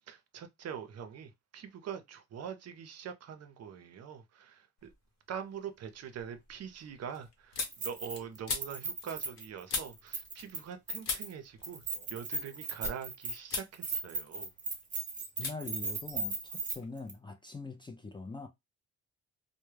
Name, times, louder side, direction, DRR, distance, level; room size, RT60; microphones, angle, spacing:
voice 1, 0.1-4.9 5.3-11.8 12.1-14.5, right 8 dB, 55° right, 0.6 m, -44 dB
sound 1, 4.8-5.3 5.7-10.8 11.0-13.1 13.4-13.8 14.1-14.8 15.4-15.6 15.8-16.9, left 4 dB, 60° left, 0.9 m, -41 dB
Keys jangling, 7.7-8.4 8.6-10.6 10.9-11.3 11.6-16.8 17.1-17.2, right 3 dB, 25° right, 1.0 m, -37 dB
voice 2, 15.4-18.5, left 3 dB, 15° left, 0.4 m, -43 dB
2.2 x 2.1 x 3.1 m
cardioid pair, 90°, 30 cm